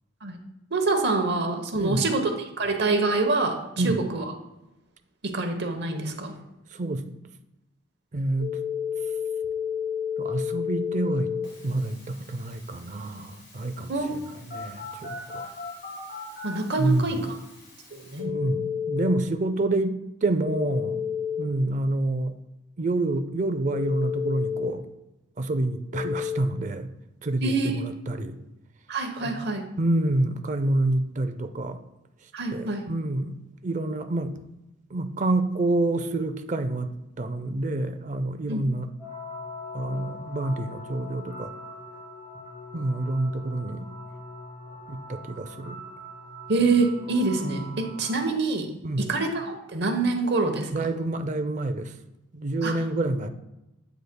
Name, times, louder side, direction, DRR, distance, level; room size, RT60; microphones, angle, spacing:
voice 1, 0.7-2.3 2.6-4.2 5.2-6.3 13.9-14.2 16.4-17.3 17.9-18.4 27.4-27.8 28.9-29.6 32.3-32.8 38.5-38.6 46.5-48.7 49.0-50.9 52.6-52.7, right 3 dB, 55° right, 5 dB, 0.9 m, -26 dB
voice 2, 1.7-2.1 3.8-4.0 6.7-7.1 8.1-8.7 10.2-11.3 11.6-14.2 14.5-15.5 16.8-17.2 18.3-21.0 21.4-22.3 22.8-24.8 25.4-26.9 27.2-28.4 29.8-31.8 32.5-33.4 33.6-34.4 34.9-36.9 37.2-38.9 39.7-41.5 42.7-43.9 44.9-45.8 48.8-49.1 50.7-51.9 52.3-53.3, right 2 dB, 35° right, 8 dB, 0.4 m, -27 dB
Telephone, 8.4-19.2 20.4-21.4 23.7-24.7 25.9-26.4, left 7 dB, 50° left, 2.7 m, -33 dB
sound 1, 39.0-48.2, left 1 dB, 35° left, 1.9 m, -42 dB
8.0 x 7.9 x 2.2 m, 0.94 s
head